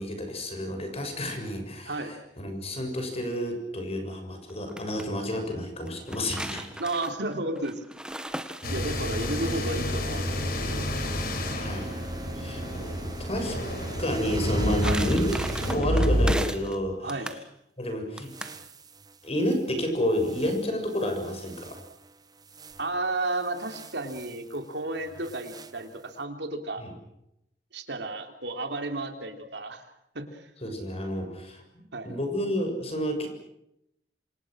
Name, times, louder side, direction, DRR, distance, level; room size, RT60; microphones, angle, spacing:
voice 1, 0.0-6.7 11.5-12.0 12.4-12.8 13.2-13.6 14.0-15.4 15.7-17.2 17.8-18.3 19.2-21.8 26.8-26.9 30.6-31.6 32.0-33.3, equal, 35° left, 5 dB, 6.7 m, -30 dB
sound 1, 4.5-5.1 5.9-9.2 14.3-16.8 17.1-17.4 18.2-18.6, right 1 dB, 5° right, 1.6 m, -36 dB
voice 2, 6.8-7.8 8.7-10.9 14.8-15.0 17.0-17.3 22.8-26.8 27.7-29.8 30.1-30.4 31.9-32.2, right 2 dB, 70° right, 6 dB, 3.4 m, -33 dB
sound 2, 8.6-16.3, left 1 dB, 60° left, 4.7 m, -29 dB
sound 3, 8.6-15.8 18.3-19.6 20.2-22.1 22.5-22.9 23.4-24.6 24.9-26.0, right 2 dB, 20° right, 1.4 m, -40 dB
27.5 x 27.0 x 6.4 m, 0.80 s
head